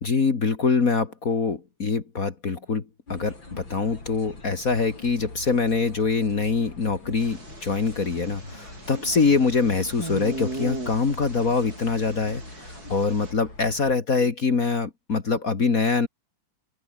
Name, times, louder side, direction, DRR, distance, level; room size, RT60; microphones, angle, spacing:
voice 1, 0.0-16.1, left 4 dB, 45° left, 2.4 m, -24 dB
sound 1, 3.1-14.0, left 2 dB, 70° left, 8.6 m, -43 dB
sound 2, 7.2-13.3, right 2 dB, 50° right, 6.1 m, -39 dB
open air
omnidirectional pair, 2.2 m